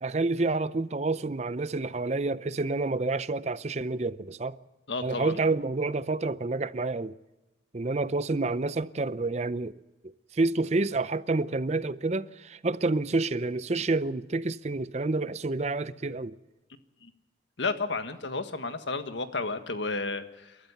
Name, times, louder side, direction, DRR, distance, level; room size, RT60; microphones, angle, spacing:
voice 1, 0.0-4.6 5.0-7.1 7.7-9.7 10.3-16.4, right 3 dB, 40° right, 0.6 m, -28 dB
voice 2, 4.9-5.3 17.0-17.1 17.6-20.6, left 3 dB, 90° left, 1.6 m, -32 dB
29.0 x 13.0 x 7.1 m
head